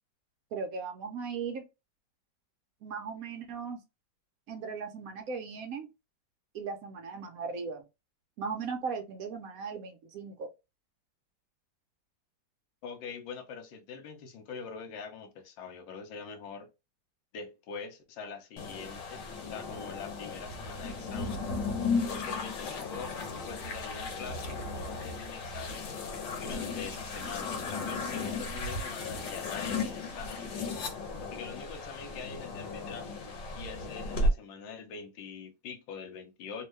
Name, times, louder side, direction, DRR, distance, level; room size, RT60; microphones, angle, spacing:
voice 1, 0.5-1.7 2.8-3.8 4.5-5.9 6.5-7.8 8.4-10.5, right 5 dB, 65° right, 0.9 m, -37 dB
voice 2, 12.8-16.7 17.3-21.4 22.1-23.2 23.5-26.0 26.4-30.5 31.3-33.1 33.5-36.7, left 5 dB, 90° left, 1.4 m, -44 dB
sound 1, 18.6-34.3, left 3 dB, 75° left, 1.4 m, -35 dB
3.5 x 2.2 x 3.2 m
omnidirectional pair, 2.0 m